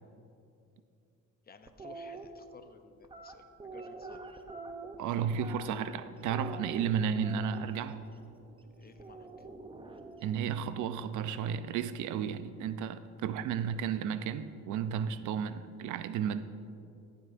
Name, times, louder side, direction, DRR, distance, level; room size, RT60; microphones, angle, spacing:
voice 1, 1.4-4.2 8.7-9.5, left 5 dB, 30° left, 8 dB, 0.6 m, -56 dB
sound 1, 1.7-2.3 3.0-6.0 6.3-7.8 9.0-10.4, right 3 dB, 15° right, 0.6 m, -46 dB
sound 2, 4.5-12.7, right 4 dB, 60° right, 0.8 m, -61 dB
voice 2, 5.0-8.0 10.2-16.4, right 7 dB, 80° right, 13 dB, 0.5 m, -33 dB
15.0 x 8.0 x 2.5 m, 2.6 s
cardioid pair, 90°, 30 cm